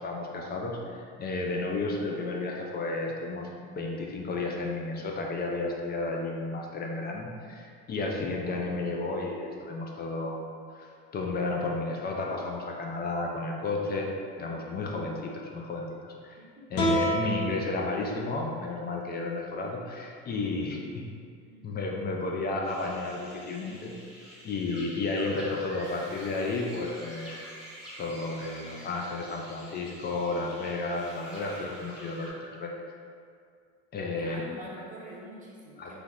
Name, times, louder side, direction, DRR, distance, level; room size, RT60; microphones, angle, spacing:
voice 1, 0.0-10.4 10.7-10.9 11.1-14.1 14.4-16.4 16.7-21.0 21.6-23.9 24.4-27.6 28.0-32.7 33.9-34.4 35.8-35.9, left 3 dB, 30° left, 0 dB, 0.4 m, -32 dB
voice 2, 16.4-17.0 20.4-20.8 21.4-21.7 34.2-36.0, equal, 20° right, -5 dB, 0.7 m, -46 dB
sound 1, 16.7-19.9, right 1 dB, 60° left, 0.8 m, -32 dB
sound 2, 22.6-32.3, equal, ahead, 1.0 m, -48 dB
Screaming, 25.8-30.2 30.8-32.6, right 2 dB, 55° right, 0.8 m, -51 dB
3.3 x 2.9 x 2.3 m, 2.2 s
hypercardioid pair, 85°, 36 cm